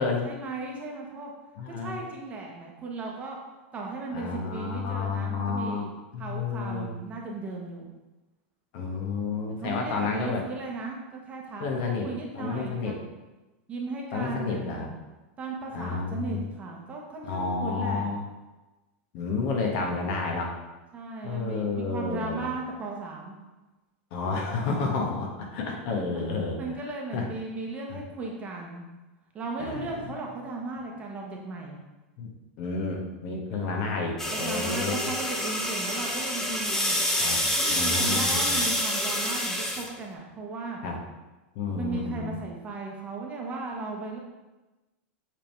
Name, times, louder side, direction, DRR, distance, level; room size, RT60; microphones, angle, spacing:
voice 1, 0.0-1.3 1.7-3.4 3.7-5.9 6.2-8.0 9.6-12.9 13.7-14.9 15.4-18.1 20.9-23.4 25.9-26.2 26.6-28.8 29.3-31.8 33.5-33.9 34.3-37.0 37.6-40.8 41.8-44.2, right 3 dB, 20° right, -1 dB, 1.1 m, -36 dB
voice 2, 1.6-2.0 4.1-7.0 8.7-10.4 11.6-12.1 12.3-12.9 14.1-14.9 15.7-16.5 17.2-18.2 19.1-20.5 21.2-22.5 24.1-26.6 27.1-27.3 29.6-30.0 32.2-32.3 32.6-34.9 37.2-37.4 37.7-38.6 40.8-41.0 41.5-42.3, left 4 dB, 50° left, 0 dB, 1.4 m, -30 dB
sound 1, 34.2-39.9, equal, 5° left, 0.8 m, -27 dB
8.1 x 3.7 x 4.6 m, 1.1 s
supercardioid pair, 150°, 7 cm